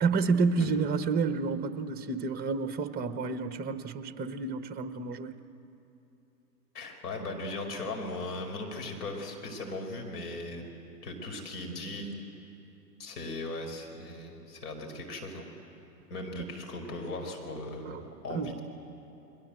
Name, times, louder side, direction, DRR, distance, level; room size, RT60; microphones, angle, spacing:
voice 1, 0.0-5.4 17.9-18.0 18.3-18.5, right 4 dB, 20° right, 10 dB, 1.1 m, -29 dB
voice 2, 6.7-12.1 13.0-15.5 16.1-18.6, left 2 dB, 70° left, 3 dB, 5.2 m, -38 dB
29.5 x 22.0 x 7.9 m, 2.9 s
hypercardioid pair, 115°, 49 cm